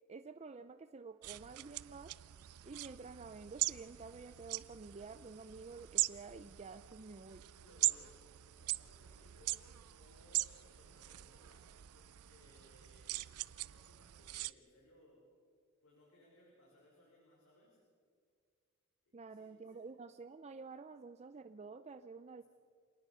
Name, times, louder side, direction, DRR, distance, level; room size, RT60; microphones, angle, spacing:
voice 1, 0.1-2.1 2.6-7.4 19.1-22.4, right 4 dB, 30° right, 9 dB, 0.5 m, -50 dB
sound 1, 1.2-14.5, right 18 dB, 85° right, 0.5 m, -41 dB
voice 2, 7.6-8.2 8.4-11.7 11.9-15.2 15.8-17.8 19.0-19.8 22.4-22.5, left 1 dB, 65° left, -4 dB, 5.6 m, -65 dB
27.0 x 19.0 x 5.7 m, 2.1 s
head